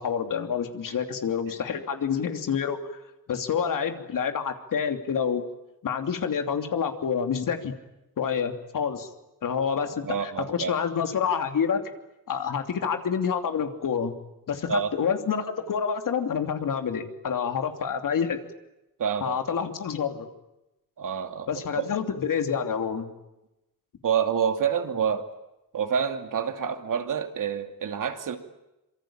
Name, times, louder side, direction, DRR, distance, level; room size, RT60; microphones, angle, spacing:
voice 1, 0.0-2.8 3.3-5.4 5.8-7.7 8.2-9.1 9.4-11.8 12.3-14.1 14.5-18.4 19.2-20.3 21.5-23.1, left 7 dB, 65° left, 6 dB, 3.0 m, -28 dB
voice 2, 10.0-10.7 14.7-14.9 19.0-19.4 21.0-21.9 24.0-25.3 25.7-28.4, right 7 dB, 65° right, 6 dB, 2.6 m, -27 dB
26.0 x 24.0 x 8.9 m, 0.93 s
cardioid pair, 100°, 34 cm